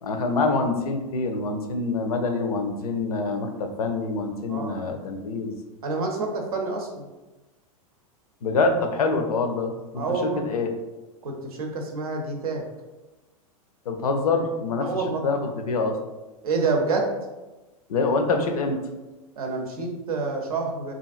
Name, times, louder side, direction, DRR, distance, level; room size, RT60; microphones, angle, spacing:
voice 1, 0.0-5.5 8.4-10.7 13.9-14.9 15.2-16.0 17.9-18.8, left 3 dB, 85° left, 5 dB, 0.5 m, -25 dB
voice 2, 5.8-7.1 9.9-10.5 11.2-12.6 14.8-15.2 16.4-17.1 19.4-20.9, right 3 dB, 80° right, 3 dB, 0.6 m, -27 dB
2.8 x 2.5 x 2.4 m, 1.1 s
hypercardioid pair, 110°, 19 cm